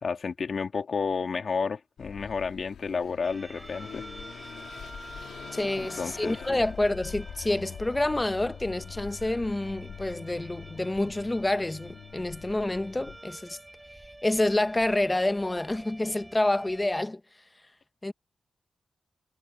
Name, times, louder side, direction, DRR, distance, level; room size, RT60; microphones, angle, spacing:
voice 1, 0.0-4.0 5.8-6.6, left 5 dB, 60° left, 2.9 m, -31 dB
Car passing by / Accelerating revving vroom, 2.0-13.2, left 8 dB, 85° left, 2.8 m, -44 dB
sound 1, 3.2-17.0, right 1 dB, 15° right, 8.0 m, -48 dB
voice 2, 5.5-13.6 14.2-17.2 18.0-18.1, left 1 dB, 20° left, 1.1 m, -28 dB
cardioid pair, 50°, 0 cm